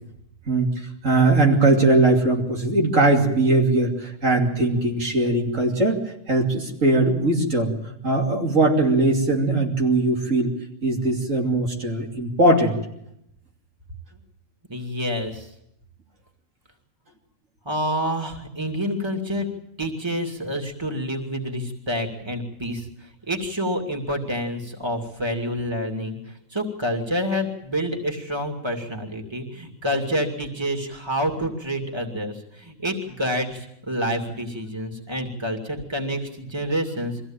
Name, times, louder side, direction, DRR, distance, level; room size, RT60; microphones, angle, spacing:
voice 1, 1.0-6.0 6.3-7.7 8.0-10.5 10.8-12.8, right 2 dB, 85° right, 1 dB, 3.3 m, -20 dB
voice 2, 14.7-15.5 17.6-19.5 19.8-37.3, equal, 20° right, 4 dB, 2.7 m, -28 dB
23.5 x 15.5 x 8.9 m, 0.77 s
omnidirectional pair, 1.3 m